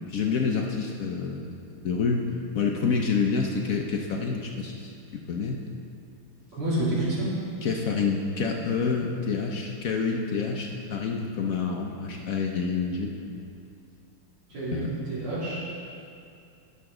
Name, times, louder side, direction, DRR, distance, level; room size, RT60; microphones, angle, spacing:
voice 1, 0.1-2.2 2.5-4.9 5.3-5.6 7.6-13.1 14.6-15.0, left 5 dB, 70° left, 1 dB, 0.8 m, -28 dB
voice 2, 6.5-7.3 14.5-15.6, right 1 dB, 80° right, -11 dB, 4.0 m, -28 dB
17.0 x 7.0 x 3.7 m, 2.5 s
omnidirectional pair, 2.3 m